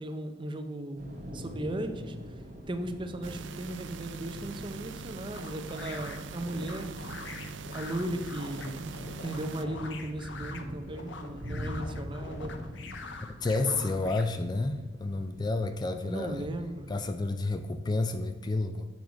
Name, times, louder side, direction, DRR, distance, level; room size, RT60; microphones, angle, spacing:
voice 1, 0.0-2.2 2.7-7.3 7.7-9.0 9.2-12.5 13.6-14.1 16.0-16.9, right 1 dB, 25° right, 7 dB, 0.6 m, -37 dB
Thunder / Rain, 1.0-17.1, equal, 40° right, 1.5 m, -44 dB
sound 1, 3.2-9.6, right 5 dB, 70° right, 0.4 m, -43 dB
sound 2, 5.3-14.2, left 3 dB, 70° left, 0.8 m, -45 dB
voice 2, 13.3-16.5 16.9-18.9, left 2 dB, 20° left, 8 dB, 0.3 m, -30 dB
7.2 x 4.6 x 5.2 m, 1.3 s
head